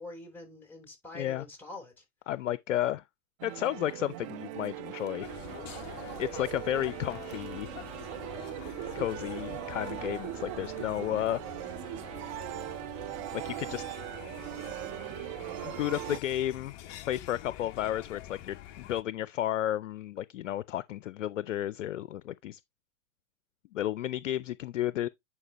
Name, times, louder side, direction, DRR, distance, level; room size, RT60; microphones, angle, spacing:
voice 1, 0.0-2.0 6.4-6.5, left 2 dB, 5° left, 3.4 m, -45 dB
voice 2, 2.3-3.0 3.4-5.3 6.2-7.7 9.0-11.4 13.3-13.8 15.6-16.7 17.1-22.6 23.7-25.1, left 12 dB, 75° left, 0.5 m, -32 dB
sound 1, 3.4-16.2, right 16 dB, 25° right, 0.4 m, -40 dB
sound 2, 5.2-19.0, left 13 dB, 30° left, 0.6 m, -46 dB
9.8 x 4.7 x 2.9 m
hypercardioid pair, 115°, 38 cm